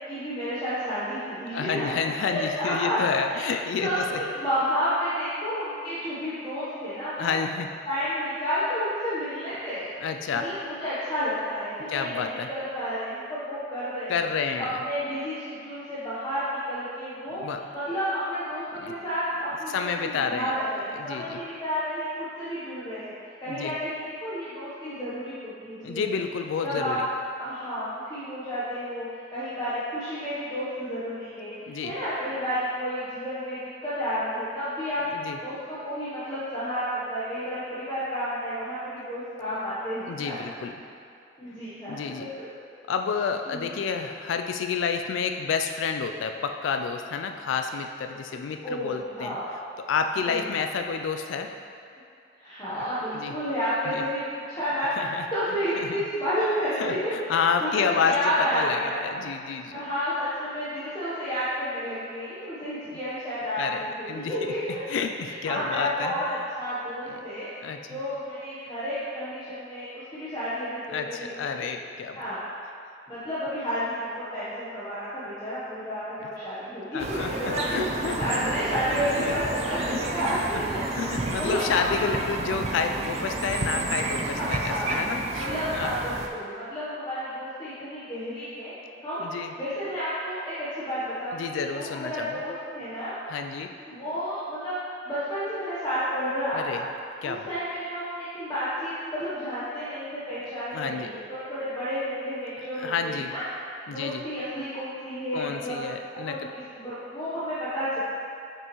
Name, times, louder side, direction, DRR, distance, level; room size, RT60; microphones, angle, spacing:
voice 1, 0.1-2.0 2.3-3.0 3.3-3.4 3.8-7.4 7.9-9.9 10.3-14.1 14.6-17.4 17.7-23.1 23.4-26.0 26.6-27.0 27.4-35.1 35.4-40.4 41.4-42.5 43.5-43.7 48.6-49.5 50.3-50.4 52.4-59.0 59.7-64.8 65.2-67.5 67.9-71.7 72.1-72.4 73.1-77.8 78.2-80.8 81.1-82.2 84.4-85.0 85.4-88.7 89.0-89.2 89.6-93.1 93.9-94.7 95.1-96.8 97.2-103.4 103.9-105.8 106.1-108.0, equal, 20° left, -12 dB, 0.9 m, -31 dB
voice 2, 1.5-4.2 7.2-7.7 10.0-10.5 11.9-12.5 14.1-14.8 17.4-17.6 18.8-18.9 19.7-20.5 21.0-21.4 23.5-23.7 25.8-27.1 31.7-32.0 35.1-35.4 40.1-40.8 41.9-42.3 42.9-49.4 49.8-51.5 53.1-53.3 53.8-54.0 55.0-55.3 55.9-56.0 56.8-58.2 58.5-59.8 63.6-64.4 64.9-66.1 67.1-67.2 67.6-68.0 70.9-72.2 76.2-76.3 76.9-78.2 79.2-79.3 79.9-80.0 80.3-80.5 80.9-85.9 89.2-89.5 91.3-92.4 93.3-93.7 96.5-96.8 97.2-97.5 100.7-101.1 102.8-103.3 103.9-104.2 105.3-106.5, left 6 dB, 85° left, 6 dB, 0.3 m, -30 dB
sound 1, 77.0-86.3, right 2 dB, 35° right, 0.4 m, -31 dB
6.0 x 5.4 x 3.0 m, 2.5 s
head